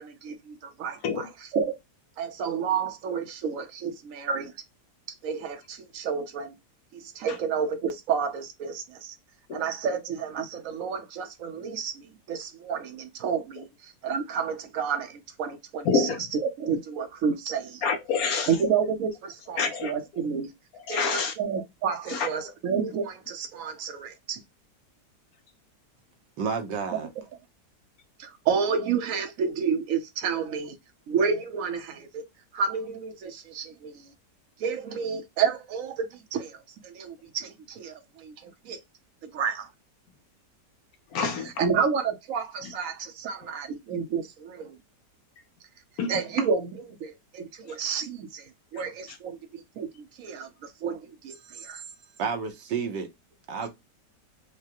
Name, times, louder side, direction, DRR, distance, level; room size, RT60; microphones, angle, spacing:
voice 1, 0.0-1.7 2.2-4.5 5.2-6.5 6.9-9.2 9.5-16.1 16.4-17.8 18.5-20.5 20.9-24.4 26.9-27.0 28.2-30.8 31.1-32.3 32.5-34.1 34.6-36.6 36.8-38.8 39.2-39.7 41.6-44.7 46.1-47.5 47.8-49.4 49.8-50.5 50.8-51.8, right 6 dB, 60° right, 1.0 m, -30 dB
voice 2, 15.8-16.2 17.8-18.6 19.6-19.9 20.7-21.3 22.1-22.3 41.1-41.7 46.0-46.2 48.7-48.8 49.1-49.2, left 5 dB, 70° left, 0.9 m, -27 dB
voice 3, 26.4-27.1 52.2-53.1 53.5-53.7, right 5 dB, 80° right, 1.5 m, -30 dB
4.7 x 2.1 x 2.8 m
omnidirectional pair, 1.9 m